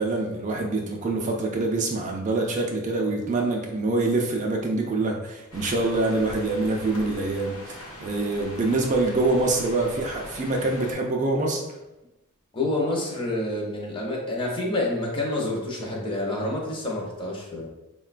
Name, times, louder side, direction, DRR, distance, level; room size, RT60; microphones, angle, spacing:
voice 1, 0.0-11.6, right 2 dB, 35° right, 1 dB, 0.3 m, -25 dB
sound 1, 5.5-10.9, left 1 dB, 75° left, 1.0 m, -41 dB
voice 2, 12.5-17.7, left 2 dB, 25° left, -1 dB, 0.6 m, -28 dB
3.7 x 2.1 x 2.4 m, 0.98 s
head